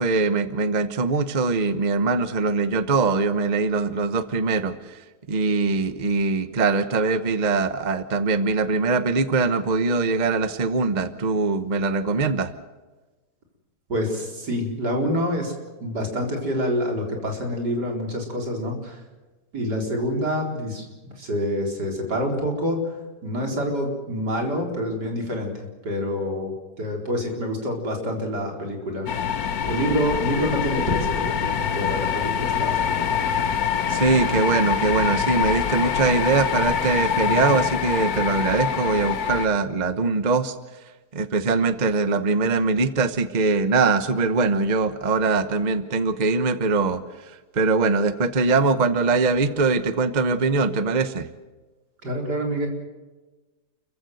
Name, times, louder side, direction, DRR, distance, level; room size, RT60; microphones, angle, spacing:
voice 1, 0.0-5.0 5.3-12.5 33.9-40.5 41.1-47.0 47.5-51.3, right 4 dB, 30° right, 12 dB, 1.0 m, -22 dB
voice 2, 13.9-15.5 15.8-19.0 19.5-22.9 23.2-29.1 29.7-33.2 52.0-52.7, equal, 85° right, 2 dB, 4.8 m, -27 dB
sound 1, 29.1-39.5, left 7 dB, 65° left, 1.6 m, -25 dB
29.5 x 15.0 x 7.8 m, 1.2 s
omnidirectional pair, 1.7 m